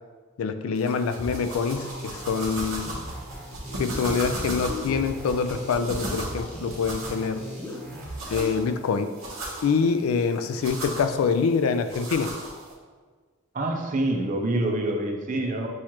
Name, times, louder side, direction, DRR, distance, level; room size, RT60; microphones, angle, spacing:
voice 1, 0.4-3.0 3.8-7.4 8.3-9.1 9.6-12.3, left 5 dB, 80° left, 9 dB, 0.3 m, -25 dB
sound 1, 0.8-12.7, right 1 dB, 75° right, 1.0 m, -37 dB
sound 2, 1.1-8.5, left 1 dB, 5° left, 0.7 m, -38 dB
voice 2, 13.5-15.7, right 1 dB, 35° right, 2 dB, 0.5 m, -26 dB
6.2 x 2.4 x 2.9 m, 1.4 s
head